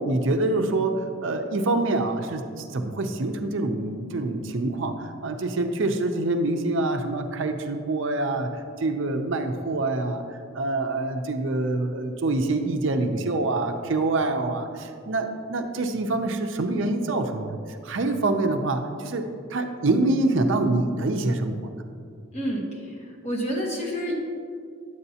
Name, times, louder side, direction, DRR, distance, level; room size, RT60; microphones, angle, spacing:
voice 1, 0.0-10.2 10.5-17.6 17.8-19.2 19.5-21.7, right 2 dB, 60° right, 6 dB, 0.5 m, -26 dB
voice 2, 22.3-22.6 23.2-24.1, equal, 30° left, -2 dB, 1.2 m, -28 dB
9.8 x 7.9 x 2.8 m, 2.3 s
head